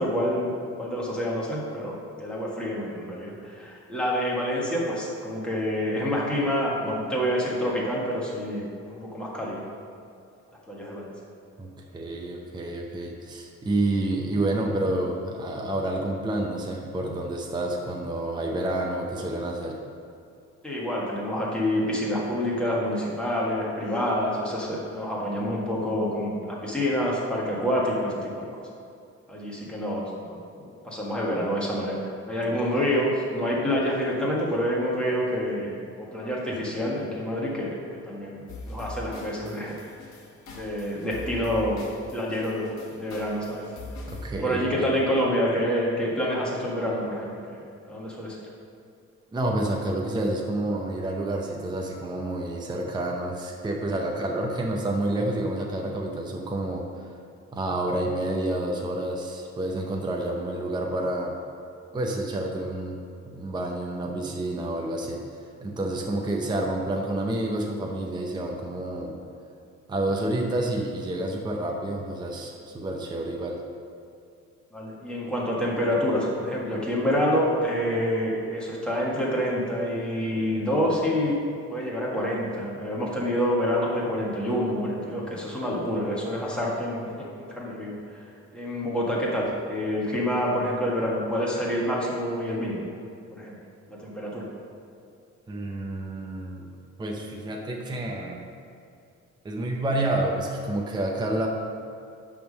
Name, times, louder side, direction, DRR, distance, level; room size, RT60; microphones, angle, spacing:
voice 1, 0.0-9.6 10.7-11.1 20.6-28.5 29.3-32.0 32.3-37.7 38.0-39.7 40.5-41.8 42.1-43.6 44.4-48.4 74.7-81.4 81.7-88.2 88.5-92.8 93.3-93.6 93.9-94.5, equal, 5° left, -5 dB, 1.6 m, -27 dB
voice 2, 11.6-19.7 36.5-36.6 44.1-44.9 49.3-57.1 57.5-61.4 61.9-63.0 63.3-65.2 65.6-69.2 69.9-73.6 95.5-96.7 97.0-98.4 99.4-101.5, right 1 dB, 15° right, 0 dB, 0.7 m, -29 dB
sound 1, 38.5-44.3, left 2 dB, 65° left, 1.3 m, -41 dB
10.5 x 3.7 x 6.4 m, 2.4 s
cardioid pair, 160°, 29 cm